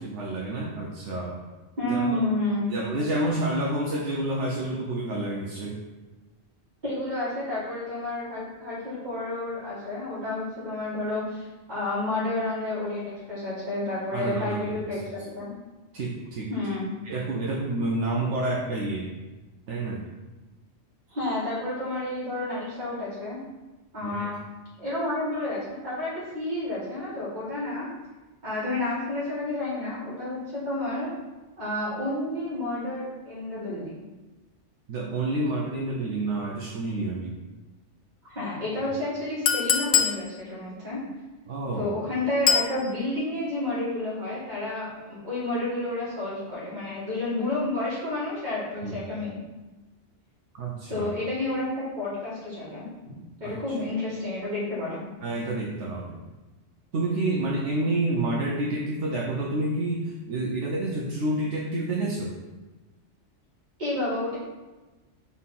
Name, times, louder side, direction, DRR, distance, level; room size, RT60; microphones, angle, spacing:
voice 1, 0.0-1.4 1.8-2.2 2.7-5.8 14.1-14.9 15.9-16.5 17.0-19.1 19.7-20.0 24.0-24.3 34.9-37.4 41.5-41.9 48.8-49.0 50.5-51.1 53.4-53.6 55.2-56.2 56.9-62.4, right 2 dB, 75° right, -2 dB, 1.1 m, -29 dB
voice 2, 1.8-2.7 6.8-15.5 16.5-16.9 21.1-23.4 23.9-24.4 24.8-27.9 28.4-31.1 31.6-34.0 38.3-41.0 41.8-49.4 50.9-52.9 53.4-55.0 63.8-64.4, left 2 dB, 40° right, -9 dB, 2.1 m, -30 dB
Chink clink, 39.5-40.2 42.5-42.7, left 8 dB, 70° left, 0.9 m, -22 dB
4.3 x 4.2 x 5.6 m, 1.2 s
omnidirectional pair, 1.3 m